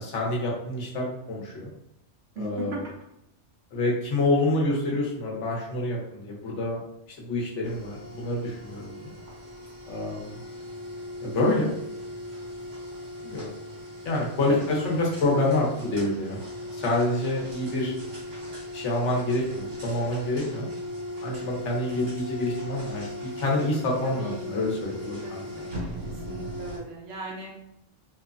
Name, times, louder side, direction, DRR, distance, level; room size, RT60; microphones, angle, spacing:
voice 1, 0.0-1.7 2.4-2.8 3.7-6.8 7.2-9.1 9.9-10.3 11.2-11.7 13.2-13.5 14.0-16.4 16.7-17.9 18.7-20.7 21.2-25.5, left 2 dB, 75° left, -3 dB, 1.0 m, -27 dB
voice 2, 2.4-2.9 4.8-4.9 14.5-14.7 24.0-24.5 25.2-26.0 26.3-27.5, right 2 dB, 65° right, -2 dB, 0.9 m, -38 dB
sound 1, 7.6-26.8, left 1 dB, 85° right, 1.4 m, -38 dB
3.1 x 2.0 x 2.4 m, 0.80 s
omnidirectional pair, 1.2 m